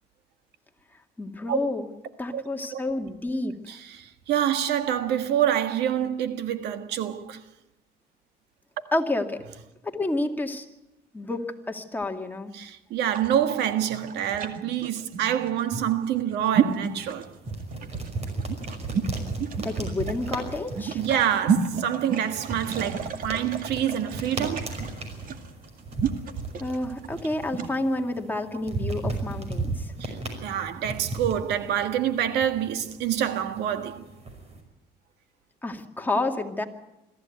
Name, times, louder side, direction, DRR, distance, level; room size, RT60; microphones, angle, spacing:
voice 1, 1.2-1.9 2.2-3.8 8.9-9.4 9.8-10.7 11.1-12.5 19.6-21.0 26.6-29.9 35.6-36.6, left 2 dB, 10° left, 2.2 m, -29 dB
voice 2, 3.7-7.4 12.5-17.3 20.9-24.8 30.0-34.1, right 10 dB, 80° right, 1.6 m, -27 dB
sound 1, 13.0-27.8, right 6 dB, 55° right, 2.2 m, -31 dB
sound 2, 16.4-34.6, right 3 dB, 40° right, 5.6 m, -36 dB
22.5 x 14.5 x 9.2 m
cardioid pair, 110°, 17 cm